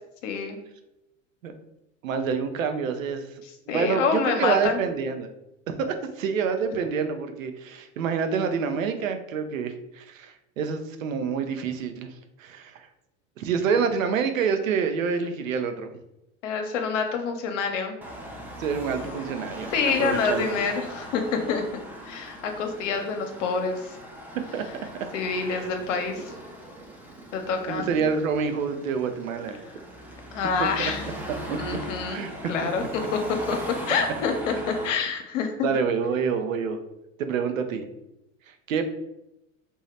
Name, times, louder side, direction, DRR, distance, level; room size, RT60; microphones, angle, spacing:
voice 1, 0.2-0.6 3.7-4.8 16.4-18.0 19.7-24.0 25.1-26.2 27.3-27.9 30.3-31.0 31.6-33.2 33.5-33.6 33.9-35.7, left 5 dB, 70° left, 5 dB, 0.7 m, -27 dB
voice 2, 2.0-3.3 3.7-5.3 5.7-12.1 12.4-12.9 13.4-15.9 18.6-20.6 24.5-24.6 25.4-25.7 27.7-29.6 30.6-30.9 31.5-31.6 32.1-32.3 32.6-32.7 34.5-34.6 35.6-36.8 37.2-37.9 38.5-38.8, right 6 dB, 80° right, 7 dB, 0.6 m, -27 dB
Car passing by / Traffic noise roadway noise / Engine, 18.0-34.9, equal, 5° right, 0.3 m, -39 dB
2.8 x 2.2 x 3.1 m, 0.87 s
hypercardioid pair, 90°, 39 cm